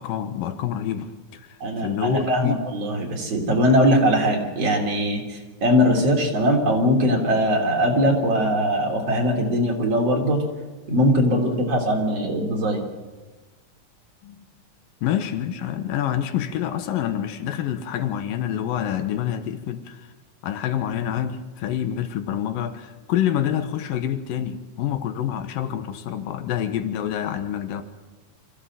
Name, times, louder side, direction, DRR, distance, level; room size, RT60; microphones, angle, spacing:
voice 1, 0.0-2.6 14.2-14.4 15.0-20.1 20.4-27.8, left 10 dB, 90° left, 9 dB, 2.9 m, -27 dB
voice 2, 1.6-10.4 10.9-12.8, equal, 45° right, 0 dB, 4.1 m, -21 dB
25.0 x 15.5 x 7.7 m, 1.2 s
omnidirectional pair, 3.9 m